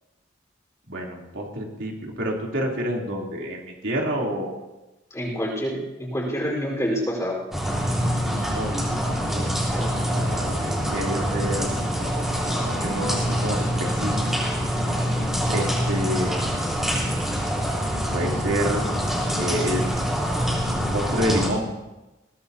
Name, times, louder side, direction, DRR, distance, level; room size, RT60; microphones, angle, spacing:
voice 1, 0.9-4.6 8.3-9.5 9.8-14.2 15.5-16.4 18.1-18.8 19.4-19.8 20.6-21.7, equal, 85° right, -2 dB, 3.3 m, -29 dB
voice 2, 5.1-7.4, equal, 15° left, -2 dB, 4.4 m, -27 dB
sound 1, 7.5-21.5, equal, ahead, 3.7 m, -25 dB
22.0 x 17.0 x 2.8 m, 1.0 s
head